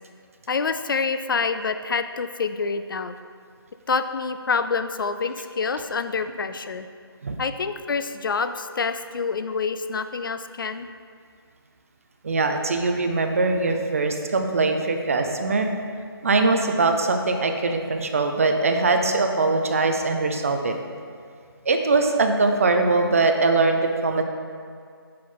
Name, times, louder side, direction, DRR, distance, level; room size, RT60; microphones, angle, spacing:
voice 1, 0.5-3.2 3.9-6.9 7.4-10.9, left 5 dB, 60° left, 10 dB, 0.4 m, -27 dB
voice 2, 12.2-15.7 16.2-20.7 21.7-24.2, right 3 dB, 35° right, 5 dB, 0.4 m, -22 dB
7.3 x 4.3 x 3.8 m, 2.1 s
hypercardioid pair, 170°, 13 cm